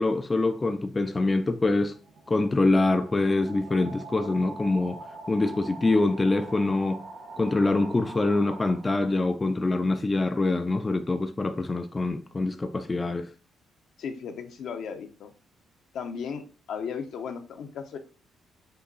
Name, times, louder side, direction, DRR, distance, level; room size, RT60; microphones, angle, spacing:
voice 1, 0.0-1.9 2.3-7.0 7.4-13.3, left 2 dB, 25° left, 0.4 m, -25 dB
sound 1, 1.8-9.3, right 3 dB, 65° right, 1.8 m, -44 dB
voice 2, 14.0-15.3 15.9-16.4 16.7-18.0, left 6 dB, 70° left, 0.7 m, -35 dB
5.4 x 2.3 x 4.0 m
cardioid pair, 90°, 0 cm